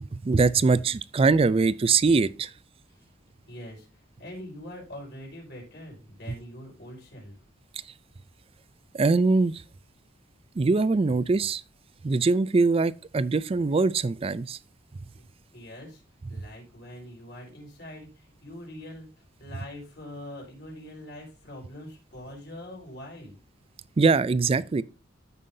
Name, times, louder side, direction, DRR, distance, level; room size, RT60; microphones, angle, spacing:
voice 1, 0.2-2.5 8.9-9.6 10.6-11.6 12.0-14.6 24.0-24.8, right 4 dB, 30° right, 0.4 m, -22 dB
voice 2, 3.5-3.9 4.2-7.3 15.2-15.3 15.5-16.0 16.3-19.1 19.4-23.3, left 1 dB, 60° left, 4.7 m, -43 dB
13.5 x 5.6 x 2.7 m
head